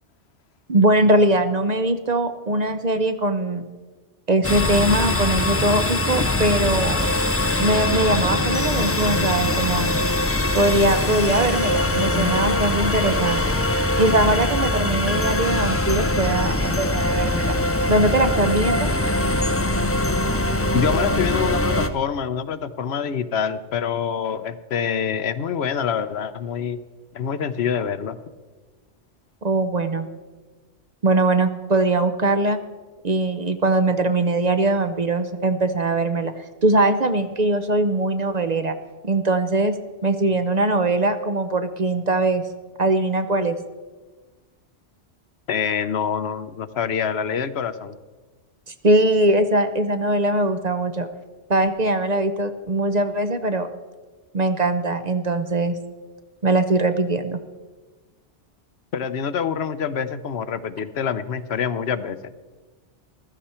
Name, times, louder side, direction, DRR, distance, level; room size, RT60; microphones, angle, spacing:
voice 1, 0.7-3.7 4.3-7.0 7.6-9.9 10.5-13.4 14.0-17.5 17.9-18.9 29.4-30.1 31.0-32.6 33.0-38.7 39.0-39.8 40.0-42.4 42.8-43.6 48.8-51.1 51.5-53.7 54.3-55.8 56.4-57.4, right 2 dB, 40° right, 9 dB, 0.7 m, -21 dB
sound 1, 4.4-21.9, left 1 dB, 20° left, 0.4 m, -22 dB
voice 2, 20.7-26.8 27.1-28.2 45.5-48.0 58.9-62.3, left 7 dB, 65° left, 12 dB, 0.9 m, -26 dB
15.0 x 13.0 x 4.4 m, 1.3 s
omnidirectional pair, 1.2 m